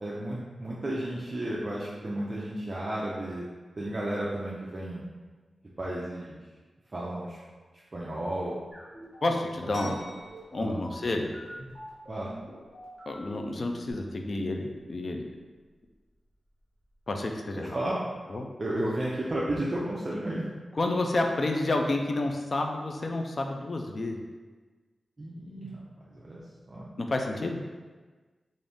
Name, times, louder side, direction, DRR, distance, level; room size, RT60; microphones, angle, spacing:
voice 1, 0.0-3.5 3.8-5.0 5.8-6.4 6.9-7.4 7.9-8.6 9.8-9.9 10.6-10.8 12.1-12.3 17.5-18.1 18.6-20.5 25.2-25.8 26.1-26.4 26.7-26.9, right 1 dB, 30° right, -6 dB, 0.5 m, -33 dB
sound 1, 8.7-13.9, equal, 10° left, 1.4 m, -45 dB
voice 2, 9.2-10.0 10.5-11.3 13.1-15.3 17.1-17.7 18.3-18.5 20.7-24.2 27.0-27.6, left 2 dB, 40° left, 3 dB, 0.4 m, -30 dB
sound 2, 9.7-17.1, equal, 85° left, 1.1 m, -49 dB
3.9 x 2.5 x 3.4 m, 1.4 s
wide cardioid pair, 150°, 0 cm